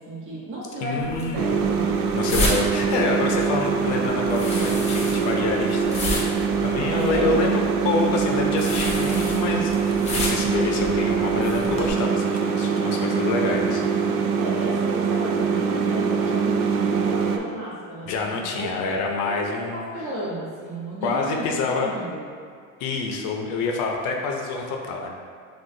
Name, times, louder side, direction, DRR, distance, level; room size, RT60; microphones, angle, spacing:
voice 1, 0.0-1.9 6.9-7.4 14.4-18.7 19.0-22.2, right 1 dB, 40° right, -7 dB, 1.2 m, -33 dB
voice 2, 0.8-1.5 2.1-6.3 6.6-9.7 10.1-13.9 18.1-19.8 21.0-21.9 22.8-25.1, left 3 dB, 65° left, 1 dB, 0.6 m, -27 dB
sound 1, 1.0-11.9, left 1 dB, 20° left, 0.6 m, -32 dB
sound 2, 1.4-17.4, right 5 dB, 75° right, 0.5 m, -23 dB
6.1 x 2.4 x 2.7 m, 2.2 s
cardioid pair, 170°, 31 cm